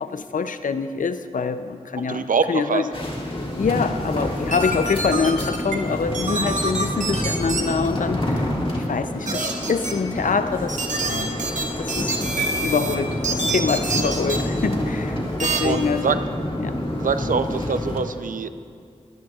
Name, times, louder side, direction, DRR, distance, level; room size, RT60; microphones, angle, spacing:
voice 1, 0.0-2.9 3.6-10.8 11.0-11.3 11.8-12.3 12.6-16.2 16.6-16.8, left 5 dB, 75° left, 11 dB, 0.5 m, -25 dB
voice 2, 2.1-2.8 14.0-14.1 15.6-16.2 17.0-18.5, right 5 dB, 80° right, 10 dB, 0.5 m, -24 dB
sound 1, 2.9-18.0, left 1 dB, 40° left, 2.0 m, -28 dB
sound 2, 4.5-5.8 6.1-7.6 9.3-9.9 10.7-13.0 13.2-14.4 15.4-15.6, right 3 dB, 65° right, 1.3 m, -26 dB
24.0 x 10.5 x 2.4 m, 2.3 s
cardioid pair, 45°, 14 cm